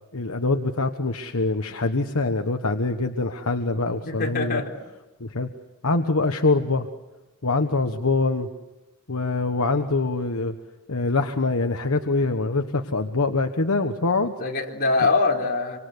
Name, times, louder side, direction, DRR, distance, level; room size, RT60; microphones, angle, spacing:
voice 1, 0.1-4.6 5.2-5.5 5.8-6.9 7.4-8.5 9.1-10.5 10.9-14.3 15.0-15.1, left 3 dB, 70° left, 5 dB, 1.3 m, -24 dB
voice 2, 4.1-4.7 14.4-15.8, left 3 dB, 45° left, 0 dB, 4.0 m, -23 dB
26.0 x 25.5 x 8.1 m, 1.1 s
head